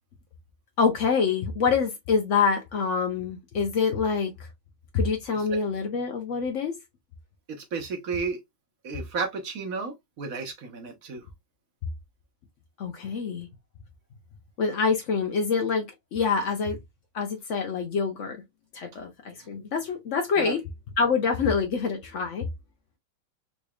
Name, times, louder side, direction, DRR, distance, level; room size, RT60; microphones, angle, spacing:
voice 1, 0.8-4.5 4.9-6.8 12.8-13.5 14.6-16.8 17.1-18.4 18.7-20.6 21.0-22.5, left 5 dB, 80° left, 0.6 m, -26 dB
voice 2, 7.5-8.4 8.8-11.2 19.4-19.5 20.4-20.5, right 4 dB, 50° right, 1.2 m, -33 dB
4.0 x 3.2 x 2.3 m
omnidirectional pair, 2.2 m